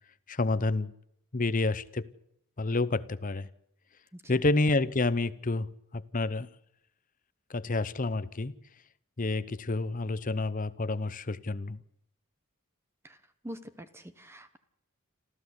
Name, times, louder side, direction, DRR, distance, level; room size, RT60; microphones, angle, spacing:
voice 1, 0.3-0.9 1.3-2.1 2.6-3.5 4.3-6.5 7.5-8.6 9.2-11.8, left 2 dB, 40° left, 0.8 m, -29 dB
voice 2, 4.1-4.4 13.0-13.2 13.4-14.6, equal, 10° right, 1.1 m, -45 dB
27.0 x 14.5 x 8.2 m
head